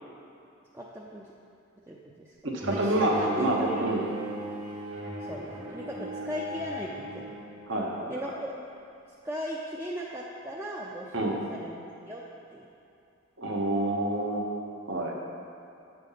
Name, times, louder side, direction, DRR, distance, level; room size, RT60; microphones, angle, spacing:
voice 1, 0.7-1.2 1.9-2.3 2.7-3.8 5.2-5.4 5.7-7.4 8.1-8.5 9.2-12.2 12.5-12.7, equal, 10° right, -4 dB, 0.5 m, -37 dB
voice 2, 2.4-4.0 7.7-8.3 11.1-11.5 13.4-14.4 14.9-15.1, right 1 dB, 60° right, -1 dB, 1.1 m, -28 dB
Bowed string instrument, 2.6-7.6, right 2 dB, 80° right, 1.5 m, -37 dB
8.2 x 5.2 x 5.6 m, 2.7 s
head